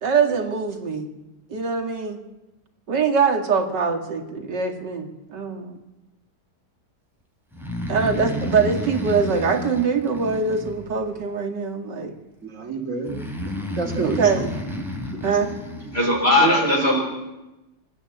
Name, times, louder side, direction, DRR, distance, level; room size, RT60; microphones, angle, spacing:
voice 1, 0.0-1.1 1.5-2.2 2.9-5.8 7.9-12.1 14.0-14.4 15.2-15.5, right 5 dB, 80° right, 5 dB, 2.7 m, -23 dB
Breathing, 7.5-11.2 13.0-16.1, left 1 dB, ahead, 3.8 m, -31 dB
voice 2, 12.4-13.1 13.7-14.5 16.4-16.9, right 5 dB, 45° right, 4 dB, 3.3 m, -27 dB
voice 3, 15.9-17.0, left 2 dB, 35° left, -1 dB, 5.4 m, -19 dB
26.5 x 13.0 x 8.7 m, 1.0 s
omnidirectional pair, 1.8 m